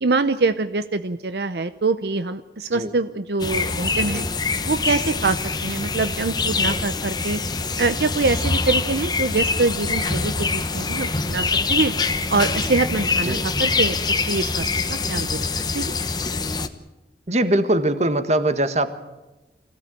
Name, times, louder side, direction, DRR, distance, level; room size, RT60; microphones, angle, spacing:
voice 1, 0.0-4.2 4.6-7.4 7.8-11.9 12.3-14.0 14.3-15.5 15.7-15.9, right 3 dB, 70° right, 11 dB, 0.7 m, -24 dB
sound 1, 3.4-16.7, left 4 dB, 25° left, 1.1 m, -24 dB
voice 2, 17.3-18.9, right 1 dB, 40° right, 10 dB, 1.6 m, -21 dB
25.0 x 16.5 x 9.2 m, 1.1 s
head